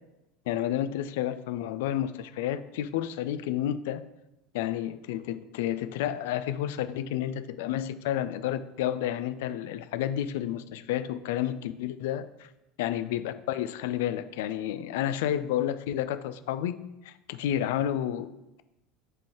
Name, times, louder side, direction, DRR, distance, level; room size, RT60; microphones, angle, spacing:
voice 1, 0.5-4.0 4.5-12.5 12.8-16.8 17.0-18.3, left 11 dB, 60° left, 12 dB, 0.4 m, -30 dB
10.5 x 3.8 x 3.0 m, 0.94 s
figure-of-eight pair, 70°, 0 cm